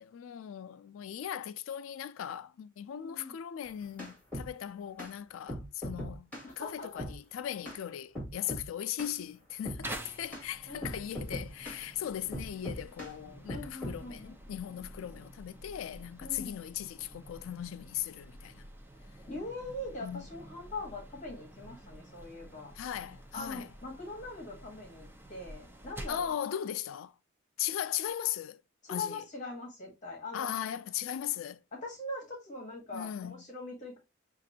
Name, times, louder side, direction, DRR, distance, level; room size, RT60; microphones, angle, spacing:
voice 1, 0.0-6.3 6.6-18.7 20.0-20.2 22.8-23.7 26.1-27.1 27.6-28.6 28.9-29.2 30.3-31.6 32.9-33.4, left 10 dB, 80° left, 0.3 m, -38 dB
voice 2, 2.9-3.4 6.4-7.1 10.7-10.9 13.5-14.3 16.2-16.6 19.0-22.7 23.3-26.3 28.8-30.5 31.7-34.0, left 2 dB, 35° left, 1.2 m, -42 dB
sound 1, 3.7-4.5 5.0-5.1 5.5-6.5 7.0-7.2 7.6-7.8 8.1-8.7 9.0-9.2 9.6-9.8 10.3-10.5 10.8-11.8 12.3-13.1 13.5-14.0, equal, 10° left, 2.5 m, -39 dB
sound 2, 9.8-26.3, right 1 dB, 10° right, 0.5 m, -49 dB
5.8 x 2.5 x 2.7 m
head